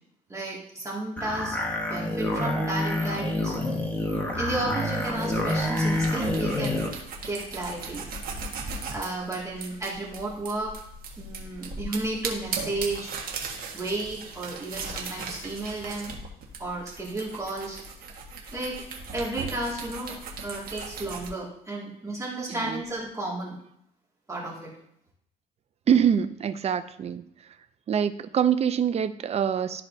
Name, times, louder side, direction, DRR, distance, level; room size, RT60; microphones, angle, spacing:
voice 1, 0.3-1.6 1.9-3.5 4.4-6.9 7.2-8.0 8.9-10.7 11.2-13.1 13.7-16.1 16.6-17.8 18.5-18.8 19.1-20.2 20.4-23.5 24.3-24.7, right 2 dB, 20° right, -5 dB, 2.2 m, -33 dB
sound 1, 1.2-6.9, left 1 dB, 10° left, 1.4 m, -27 dB
sound 2, 5.0-21.3, right 4 dB, 60° right, 1.3 m, -38 dB
voice 2, 22.5-22.8 25.9-27.2 27.9-29.8, right 8 dB, 40° right, 12 dB, 0.5 m, -24 dB
12.5 x 4.2 x 2.7 m, 0.71 s
cardioid pair, 110°, 17 cm